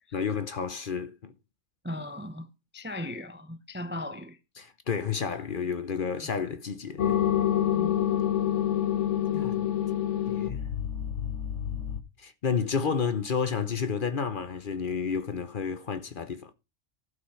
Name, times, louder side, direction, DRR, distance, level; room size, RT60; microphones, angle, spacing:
voice 1, 0.1-1.3 4.6-7.2 9.3-9.7 10.3-10.7 12.2-16.5, left 6 dB, 45° left, 0.9 m, -31 dB
voice 2, 1.8-2.5 2.7-4.4 7.7-7.9, left 1 dB, 15° right, 0.5 m, -37 dB
sound 1, 7.0-12.0, left 10 dB, 65° left, 1.4 m, -27 dB
12.0 x 5.6 x 5.6 m
omnidirectional pair, 1.3 m